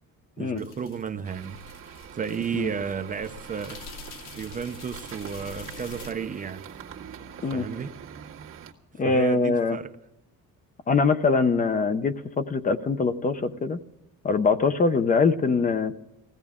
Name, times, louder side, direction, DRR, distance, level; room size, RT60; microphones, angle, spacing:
voice 1, 0.4-1.6 2.1-3.8 4.4-6.6 7.5-7.9 9.0-9.9, right 6 dB, 25° right, 0.6 m, -33 dB
sound 1, 0.6-6.1, left 5 dB, 85° left, 2.1 m, -46 dB
sound 2, 1.2-8.7, right 8 dB, 40° right, 1.8 m, -43 dB
voice 2, 9.0-9.8 10.9-13.8 14.2-15.9, left 4 dB, 25° left, 0.7 m, -23 dB
20.5 x 16.0 x 3.6 m
cardioid pair, 170°, 32 cm